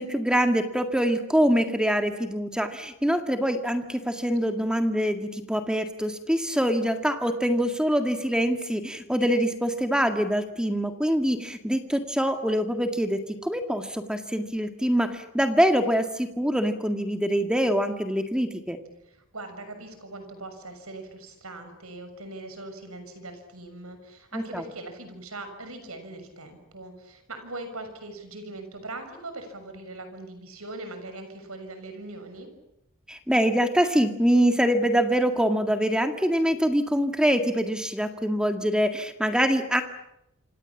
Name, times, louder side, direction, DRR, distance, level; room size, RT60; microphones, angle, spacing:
voice 1, 0.0-18.8 24.3-24.6 33.1-39.8, equal, 5° right, 6 dB, 1.9 m, -24 dB
voice 2, 19.1-32.5, right 2 dB, 85° right, 8 dB, 6.5 m, -41 dB
27.0 x 27.0 x 7.3 m, 0.82 s
head